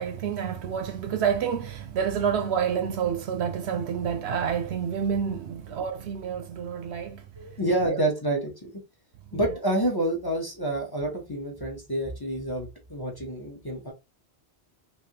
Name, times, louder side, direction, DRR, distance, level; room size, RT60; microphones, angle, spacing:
voice 1, 0.0-7.2 9.3-9.4, right 7 dB, 75° right, 0.9 m, -28 dB
voice 2, 7.4-8.8 9.3-13.9, right 1 dB, 25° left, 0.8 m, -28 dB
3.3 x 2.6 x 2.8 m
omnidirectional pair, 1.1 m